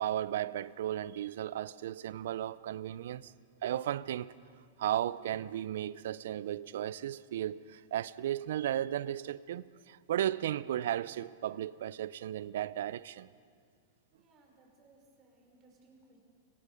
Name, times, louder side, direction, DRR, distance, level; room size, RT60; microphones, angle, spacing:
voice 1, 0.0-3.3 3.6-4.3 4.8-13.3, right 11 dB, 70° right, 0.5 m, -35 dB
voice 2, 14.1-16.2, right 2 dB, 35° right, 6.0 m, -63 dB
30.0 x 18.5 x 5.2 m
hypercardioid pair, 105°, 0 cm